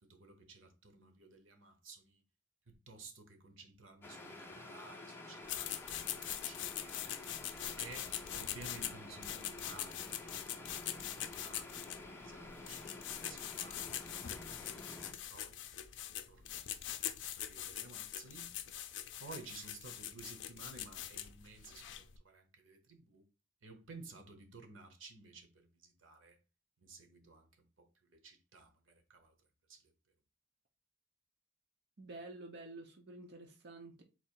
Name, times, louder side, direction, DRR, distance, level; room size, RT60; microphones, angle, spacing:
voice 1, 0.0-2.2 2.7-7.0 7.8-8.1 8.3-10.4 10.9-11.8 12.1-13.0 13.3-13.9 14.9-15.7 16.3-16.7 17.4-18.6 19.2-23.2 23.6-26.4 26.8-29.3 29.7-29.9, right 3 dB, 85° right, 1.0 m, -55 dB
sound 1, 4.0-15.1, left 2 dB, 10° left, 0.6 m, -50 dB
sound 2, 5.4-22.2, left 11 dB, 65° left, 0.4 m, -43 dB
voice 2, 32.0-34.0, right 2 dB, 60° right, 0.7 m, -50 dB
4.1 x 2.5 x 4.5 m
head